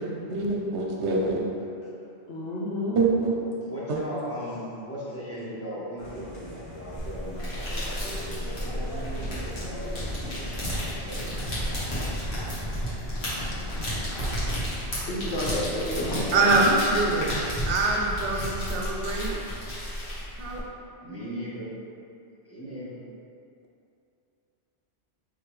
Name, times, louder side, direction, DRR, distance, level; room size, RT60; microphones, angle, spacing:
voice 1, 0.0-1.4 3.0-3.3 3.9-4.0 16.3-19.4 20.4-20.6, right 3 dB, 80° right, -2 dB, 1.0 m, -25 dB
voice 2, 2.3-3.0 3.7-3.8 13.6-14.2 15.1-16.7, left 1 dB, 85° left, -5 dB, 1.2 m, -31 dB
voice 3, 3.7-10.0 10.5-11.3 21.0-21.7 22.4-23.0, equal, 15° left, -9 dB, 1.0 m, -38 dB
sound 1, 6.0-14.8, left 1 dB, 50° left, 1.1 m, -41 dB
sound 2, 7.0-20.6, equal, 70° left, 1.5 m, -32 dB
5.2 x 3.1 x 3.1 m, 2.5 s
omnidirectional pair, 1.1 m